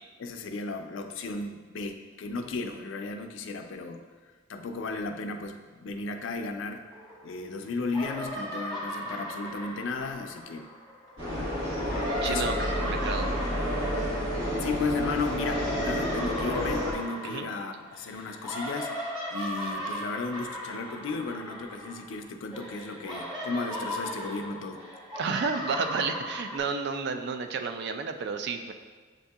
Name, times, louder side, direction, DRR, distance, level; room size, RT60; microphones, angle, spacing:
voice 1, 0.2-4.0 4.5-6.9 7.2-10.7 11.3-11.5 12.2-12.5 12.8-13.1 14.6-24.8, left 3 dB, 70° left, 6 dB, 0.4 m, -35 dB
sound 1, 6.9-7.6 7.8-11.1 11.7-22.2 22.5-26.6, equal, 20° right, 0.9 m, -37 dB
sound 2, 11.2-16.9, equal, 75° right, 1.3 m, -30 dB
voice 2, 12.2-13.3 17.2-17.5 25.2-28.7, right 5 dB, 55° right, 7 dB, 0.3 m, -31 dB
7.5 x 2.7 x 2.3 m, 1.4 s
head